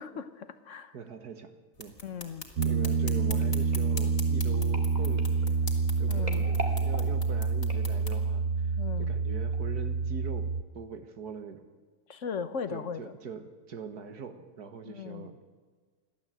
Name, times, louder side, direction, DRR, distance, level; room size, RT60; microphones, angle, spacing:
voice 1, 0.0-0.9 2.0-2.5 6.1-6.5 8.8-9.1 12.1-13.1 14.8-15.3, left 6 dB, 55° left, 11 dB, 1.3 m, -38 dB
voice 2, 0.9-1.5 1.8-2.0 2.6-5.6 6.0-10.5 10.7-11.7 12.7-15.4, right 6 dB, 90° right, 8 dB, 2.1 m, -42 dB
sound 1, 1.7-8.2, left 3 dB, 35° left, 2.6 m, -44 dB
Piano, 2.6-10.6, right 4 dB, 55° right, 0.8 m, -28 dB
sound 2, 3.4-8.4 9.0-9.3 9.5-9.6, right 2 dB, 25° right, 2.3 m, -43 dB
29.0 x 12.0 x 7.9 m, 1.5 s
omnidirectional pair, 1.6 m